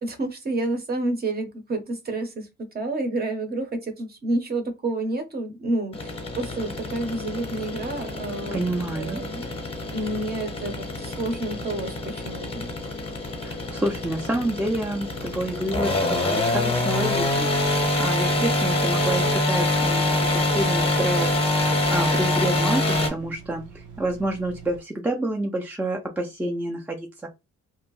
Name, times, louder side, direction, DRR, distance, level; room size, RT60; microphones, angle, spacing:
voice 1, 0.0-8.6 8.9-9.6 9.9-12.7, right 2 dB, 30° right, 0.7 m, -29 dB
sound 1, 5.9-23.1, left 1 dB, 20° left, 0.7 m, -25 dB
voice 2, 8.5-9.2 13.4-27.3, right 1 dB, 5° right, 0.3 m, -28 dB
sound 2, 16.5-24.8, right 5 dB, 85° right, 0.9 m, -44 dB
2.7 x 2.1 x 3.0 m
cardioid pair, 130°, 30 cm